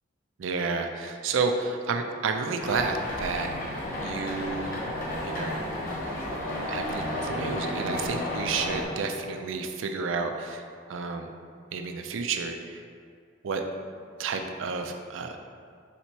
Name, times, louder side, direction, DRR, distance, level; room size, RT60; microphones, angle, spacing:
voice 1, 0.4-3.5 4.0-4.7 5.2-5.6 6.7-10.6 10.9-11.3 11.7-12.8 13.4-13.6 14.2-15.4, right 4 dB, 90° right, 5 dB, 0.4 m, -30 dB
sound 1, 2.6-8.8, left 1 dB, 50° left, 0.9 m, -32 dB
4.1 x 2.8 x 4.4 m, 2.2 s
head